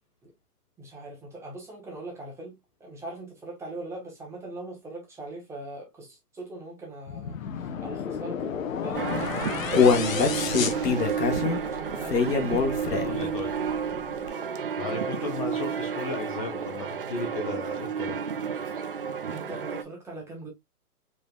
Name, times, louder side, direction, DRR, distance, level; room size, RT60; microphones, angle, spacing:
voice 1, 0.8-13.6 19.3-20.5, right 2 dB, 5° right, 1.0 m, -40 dB
sound 1, 7.1-11.7, left 8 dB, 55° left, 0.9 m, -33 dB
sound 2, 8.9-19.8, right 6 dB, 40° right, 0.4 m, -31 dB
Human voice, 9.1-13.3 13.7-13.8 14.3-14.4, left 5 dB, 85° left, 1.3 m, -24 dB
voice 2, 13.0-13.5 14.8-18.2, left 3 dB, 25° left, 0.7 m, -35 dB
5.0 x 3.4 x 2.2 m
hypercardioid pair, 150°, 47 cm